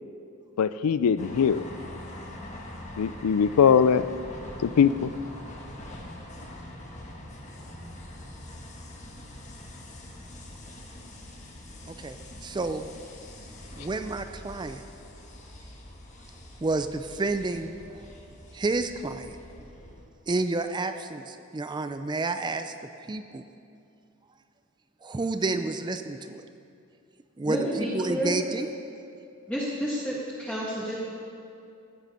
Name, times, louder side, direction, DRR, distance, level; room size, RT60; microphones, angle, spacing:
voice 1, 0.6-1.6 3.0-4.0 4.6-5.1, left 7 dB, 90° left, 15 dB, 0.4 m, -21 dB
sound 1, 1.2-20.0, left 1 dB, 35° left, 1.4 m, -44 dB
voice 2, 11.9-12.9 13.8-14.8 16.6-17.7 18.5-19.4 20.3-22.7 23.1-23.5 25.0-26.5 27.4-28.7, right 3 dB, 20° right, 8 dB, 0.4 m, -30 dB
voice 3, 27.5-28.3 29.5-30.9, equal, 5° left, -7 dB, 1.5 m, -30 dB
14.5 x 9.1 x 5.6 m, 2.6 s
head